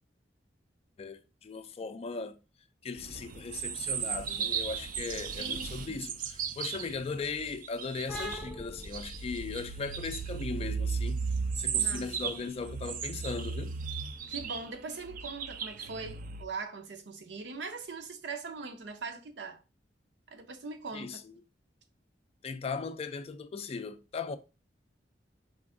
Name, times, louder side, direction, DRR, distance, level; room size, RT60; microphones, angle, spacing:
voice 1, 1.0-2.4 2.8-11.2 11.6-13.7 20.9-21.2 22.4-24.4, left 4 dB, 35° left, 0.3 m, -38 dB
sound 1, 3.0-8.4 8.8-16.4, right 6 dB, 50° right, 0.4 m, -35 dB
voice 2, 5.4-6.0 11.8-12.3 14.3-19.6 20.3-21.2, right 4 dB, 80° right, 0.7 m, -41 dB
sound 2, 8.1-15.4, left 1 dB, ahead, 0.7 m, -47 dB
4.7 x 2.5 x 3.6 m
head